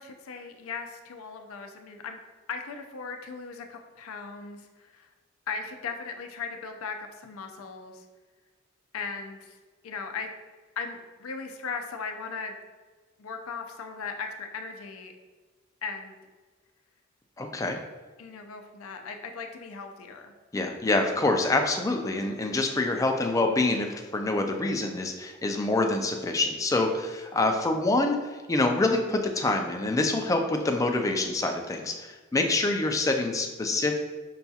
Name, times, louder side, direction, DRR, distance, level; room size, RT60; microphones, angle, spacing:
voice 1, 0.0-2.2 2.5-5.1 5.5-8.0 8.9-9.6 9.8-10.3 10.8-12.6 13.2-15.1 15.8-16.2 18.2-20.3, left 5 dB, 85° left, 5 dB, 0.5 m, -38 dB
voice 2, 17.4-17.8 20.5-34.0, left 2 dB, 15° left, 4 dB, 0.3 m, -26 dB
5.6 x 2.3 x 2.7 m, 1.4 s
head